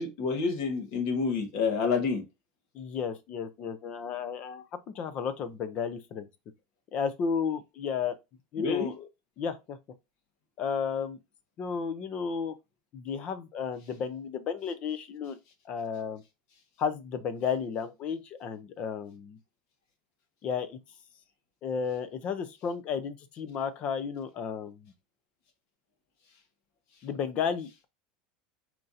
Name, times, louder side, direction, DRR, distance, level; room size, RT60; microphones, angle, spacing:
voice 1, 0.0-2.2 8.6-8.9, left 5 dB, 50° left, 1.2 m, -28 dB
voice 2, 2.7-6.3 6.9-8.2 8.5-9.1 9.4-9.8 10.6-11.2 11.6-12.5 12.9-15.4 15.7-16.2 16.8-19.4 20.4-20.8 21.6-24.9 27.0-27.8, left 6 dB, 30° left, 0.5 m, -33 dB
4.4 x 2.6 x 4.0 m
supercardioid pair, 180°, 4 cm